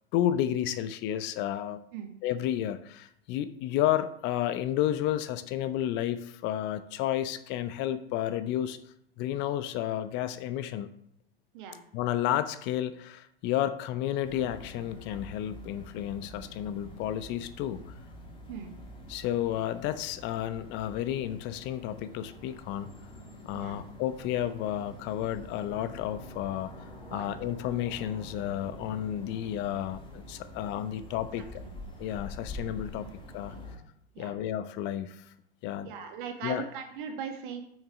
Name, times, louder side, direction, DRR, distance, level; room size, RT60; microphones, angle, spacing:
voice 1, 0.1-1.8 2.2-8.8 9.2-10.9 11.9-18.0 19.1-22.9 23.5-26.7 27.1-31.6 32.0-33.5 34.2-35.3 35.6-35.9 36.4-36.6, left 11 dB, 40° left, 12 dB, 0.6 m, -31 dB
sound 1, 14.2-33.8, left 1 dB, 15° left, 1.9 m, -46 dB
voice 2, 31.4-31.8 33.5-33.6 34.1-34.3 35.8-37.6, right 7 dB, 60° right, 4 dB, 1.6 m, -39 dB
8.1 x 6.4 x 3.7 m, 0.71 s
figure-of-eight pair, 90°, 29 cm